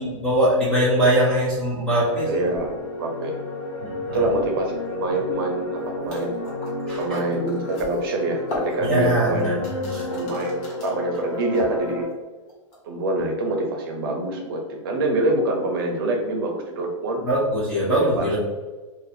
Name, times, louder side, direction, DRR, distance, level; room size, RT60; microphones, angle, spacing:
voice 1, 0.0-2.4 3.8-4.3 6.9-7.2 8.8-10.1 17.2-18.4, right 1 dB, 5° left, -8 dB, 0.4 m, -22 dB
sound 1, 2.0-12.0, left 2 dB, 60° left, 1.1 m, -32 dB
voice 2, 2.3-3.4 4.1-6.3 7.0-9.6 10.1-12.1 12.8-17.2 17.8-18.4, right 2 dB, 45° right, 2 dB, 0.7 m, -26 dB
sound 2, 5.8-5.9 6.0-11.0 11.3-12.1 12.5-12.8, left 1 dB, 35° left, 1.2 m, -36 dB
2.6 x 2.4 x 4.0 m, 1.3 s
supercardioid pair, 170°, 17 cm